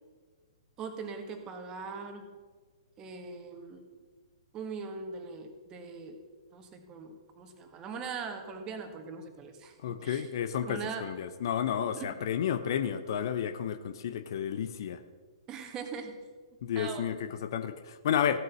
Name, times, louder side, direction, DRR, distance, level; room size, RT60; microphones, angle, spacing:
voice 1, 0.8-2.3 3.0-3.9 4.5-6.2 6.5-10.3 10.6-11.1 11.9-12.1 15.5-16.2 16.7-17.3, right 5 dB, 25° right, 5 dB, 1.7 m, -41 dB
voice 2, 9.8-15.0 16.6-18.4, left 9 dB, 50° left, 11 dB, 0.8 m, -31 dB
15.5 x 7.7 x 6.3 m, 1.4 s
figure-of-eight pair, 115°, 3 cm